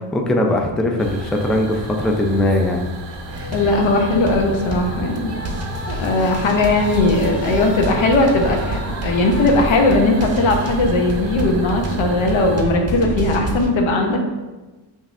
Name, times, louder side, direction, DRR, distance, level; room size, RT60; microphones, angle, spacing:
voice 1, 0.1-2.9, left 1 dB, ahead, 1 dB, 0.3 m, -20 dB
sound 1, 1.0-12.6, right 2 dB, 65° right, 0.7 m, -34 dB
sound 2, 3.3-13.7, right 1 dB, 35° right, 0.7 m, -27 dB
voice 2, 3.5-5.3 5.9-14.2, left 2 dB, 75° left, 3 dB, 0.8 m, -18 dB
5.3 x 2.6 x 2.5 m, 1.2 s
cardioid pair, 65°, 47 cm